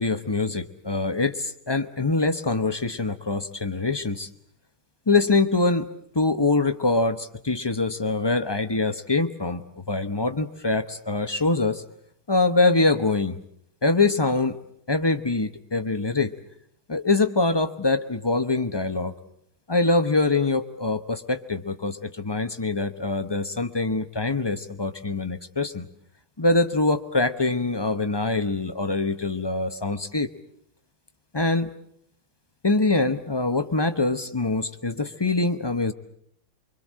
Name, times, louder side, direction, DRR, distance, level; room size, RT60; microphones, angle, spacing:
voice 1, 0.0-4.3 5.1-5.9 6.1-11.8 12.3-13.4 13.8-14.6 14.9-16.3 16.9-19.1 19.7-25.9 26.4-30.3 31.3-31.7 32.6-35.9, left 3 dB, 35° left, 9 dB, 0.4 m, -24 dB
25.0 x 24.5 x 7.6 m, 0.70 s
omnidirectional pair, 2.3 m